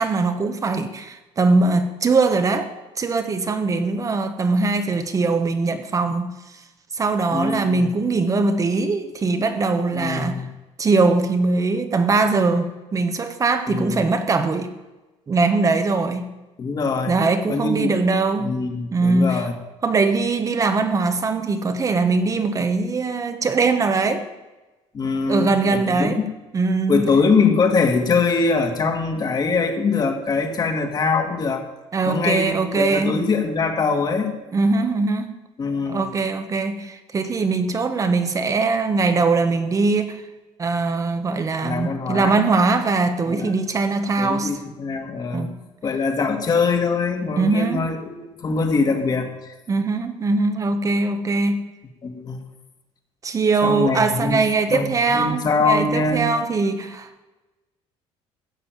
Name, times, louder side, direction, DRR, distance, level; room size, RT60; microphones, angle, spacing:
voice 1, 0.0-2.7 3.0-6.3 6.9-10.4 10.8-14.7 15.3-16.3 17.1-18.6 18.9-19.5 19.8-24.3 25.3-26.2 26.5-27.1 31.9-33.2 34.5-35.3 35.9-40.2 40.6-44.5 45.3-45.6 47.4-47.9 49.7-51.7 53.2-57.2, right 3 dB, 30° right, 9 dB, 1.3 m, -21 dB
voice 2, 7.3-7.9 9.9-10.5 13.7-14.0 16.6-17.2 17.5-18.0 18.4-19.5 24.9-26.3 26.9-31.6 32.0-34.4 35.6-36.0 41.6-42.4 43.3-43.6 44.2-45.5 45.8-49.5 52.0-52.4 53.6-54.4 54.7-56.3, left 4 dB, 35° left, 5 dB, 2.1 m, -23 dB
15.0 x 6.7 x 9.3 m, 1.1 s
cardioid pair, 125°, 12 cm